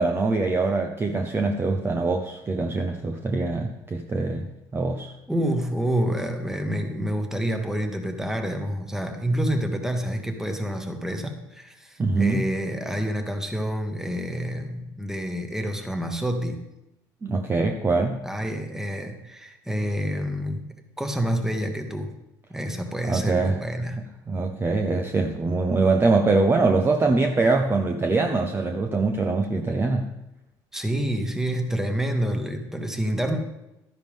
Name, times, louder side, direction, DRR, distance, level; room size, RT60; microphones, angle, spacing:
voice 1, 0.0-4.5 4.7-5.1 12.0-12.5 17.2-18.2 23.1-23.6 24.3-30.1, right 3 dB, 25° right, 4 dB, 0.8 m, -23 dB
voice 2, 5.3-16.6 18.2-20.7 21.0-22.1 22.5-24.0 30.7-33.4, equal, 5° right, 5 dB, 1.5 m, -28 dB
12.0 x 10.5 x 3.6 m, 0.91 s
supercardioid pair, 95°, 9 cm